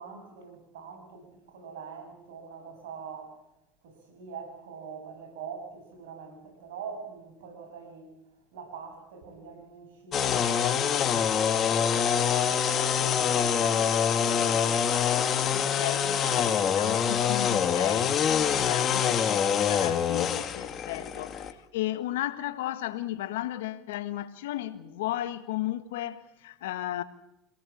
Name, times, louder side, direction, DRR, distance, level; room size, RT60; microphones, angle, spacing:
voice 1, 0.0-3.4 3.8-8.1 8.5-11.2 11.5-14.8 15.3-16.7 18.8-19.1 20.9-21.1, right 6 dB, 85° right, 7.4 m, -44 dB
sound 1, 10.1-21.5, left 8 dB, 40° left, 2.2 m, -25 dB
voice 2, 15.5-18.2 18.5-27.0, left 14 dB, 80° left, 1.6 m, -35 dB
25.5 x 18.5 x 8.7 m
hypercardioid pair, 90°, 0 cm